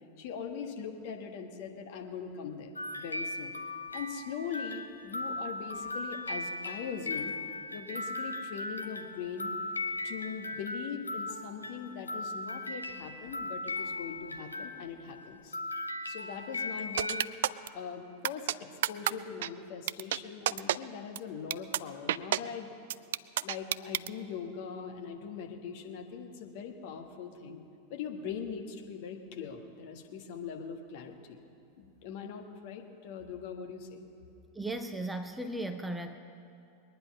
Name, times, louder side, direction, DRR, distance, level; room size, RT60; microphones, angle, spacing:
voice 1, 0.2-3.5 3.9-7.4 7.7-9.6 10.0-15.6 16.0-17.3 17.7-22.7 23.4-27.6 27.9-31.4 31.8-34.0, left 6 dB, 50° left, 3 dB, 1.6 m, -41 dB
sound 1, 2.8-15.3 15.5-17.3, left 2 dB, 80° left, 0.9 m, -38 dB
sound 2, 17.0-17.7 18.2-18.5 18.8-19.1 19.4-19.5 19.9-20.2 20.5-20.8 21.2-21.3 21.5-21.8 22.1-22.4 22.9-24.1, right 12 dB, 55° right, 0.3 m, -28 dB
voice 2, 34.5-36.2, right 1 dB, 5° right, 6 dB, 0.7 m, -36 dB
22.0 x 10.0 x 5.6 m, 2.6 s
figure-of-eight pair, 90°, 0 cm